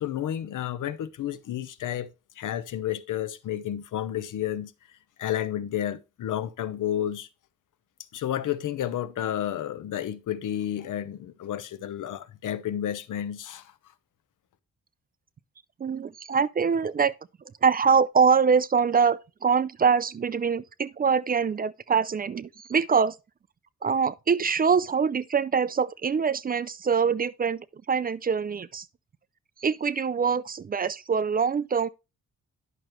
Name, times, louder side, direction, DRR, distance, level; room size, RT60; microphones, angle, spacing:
voice 1, 0.0-2.1 2.4-4.7 5.2-7.3 8.1-13.6, left 11 dB, 80° left, 0.9 m, -31 dB
voice 2, 15.8-17.1 17.6-23.2 23.8-28.9 29.6-31.9, right 6 dB, 30° right, 0.4 m, -24 dB
10.5 x 6.2 x 3.1 m
cardioid pair, 130°, 31 cm